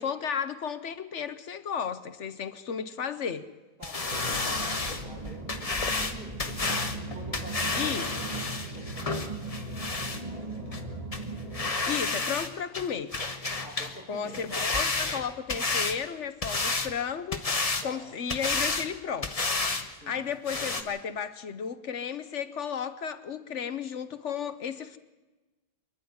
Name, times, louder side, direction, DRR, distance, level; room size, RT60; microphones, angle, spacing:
voice 1, 0.0-3.5 7.8-8.0 11.9-13.1 14.1-19.3 19.6-25.0, left 7 dB, 50° left, 1.0 m, -34 dB
sound 1, 3.8-10.2 10.7-10.8 11.1-11.2 11.5-12.5 12.7-14.0 14.3-16.0 16.4-16.9 17.3-17.9 18.3-18.9 19.2-19.9 20.1-20.2 20.5-20.8, left 3 dB, 25° left, 1.1 m, -30 dB
voice 2, 3.8-6.7 7.0-10.9 12.1-12.4 13.6-14.7 15.5-15.7 17.8-18.1 20.0-20.2, right 1 dB, 45° right, 4.2 m, -48 dB
sound 2, 4.1-11.7, right 2 dB, 20° right, 1.6 m, -38 dB
25.5 x 11.0 x 9.5 m
omnidirectional pair, 1.8 m